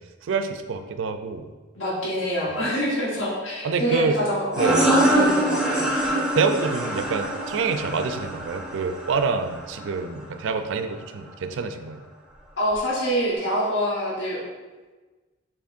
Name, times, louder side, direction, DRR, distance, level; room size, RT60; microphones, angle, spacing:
voice 1, 0.2-1.5 2.5-2.6 3.6-4.2 4.6-4.9 6.4-12.0, right 4 dB, 65° right, 8 dB, 0.3 m, -27 dB
voice 2, 1.7-5.9 12.6-14.4, equal, 65° left, -7 dB, 1.2 m, -26 dB
sound 1, 4.5-9.9, right 1 dB, 5° right, 0.6 m, -24 dB
6.8 x 2.9 x 2.5 m, 1.3 s
head